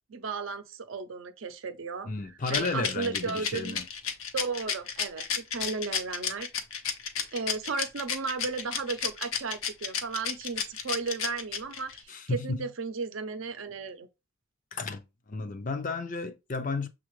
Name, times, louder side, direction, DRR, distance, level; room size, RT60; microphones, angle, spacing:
voice 1, 0.1-2.1 2.5-3.8 4.3-6.5 7.3-14.1, right 4 dB, 75° right, 0.6 m, -35 dB
voice 2, 2.0-3.9 12.1-12.7 14.7-16.9, left 3 dB, 40° left, 0.5 m, -33 dB
Rattle, 2.4-12.0, left 7 dB, 85° left, 0.7 m, -32 dB
6.5 x 2.4 x 3.1 m
head